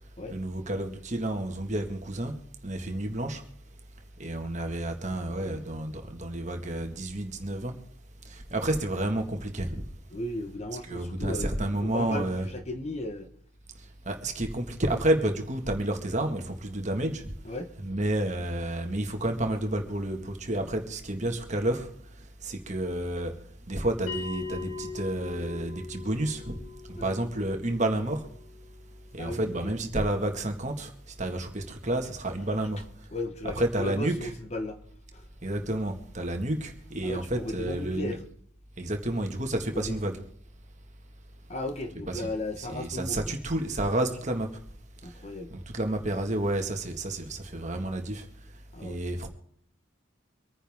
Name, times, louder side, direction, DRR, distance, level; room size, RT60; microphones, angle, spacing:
voice 1, 0.3-2.3 2.6-3.4 4.2-7.7 8.3-9.8 10.9-12.5 14.1-17.2 17.8-21.9 22.4-23.3 23.7-26.6 26.9-28.3 29.1-30.9 31.2-32.8 33.4-34.3 35.4-38.2 38.8-40.1 42.1-42.3 42.6-44.5 45.5-48.2 48.8-49.3, right 1 dB, 35° right, 1.8 m, -30 dB
voice 2, 5.1-5.6 10.1-13.3 17.4-17.7 26.9-27.1 29.2-29.7 33.1-34.8 35.1-35.3 37.0-38.2 39.7-40.0 41.5-43.3 45.0-45.5 48.7-49.0, left 1 dB, 30° left, 1.3 m, -36 dB
Bell, 24.1-29.1, left 4 dB, 70° left, 4.4 m, -40 dB
25.0 x 10.0 x 3.6 m
head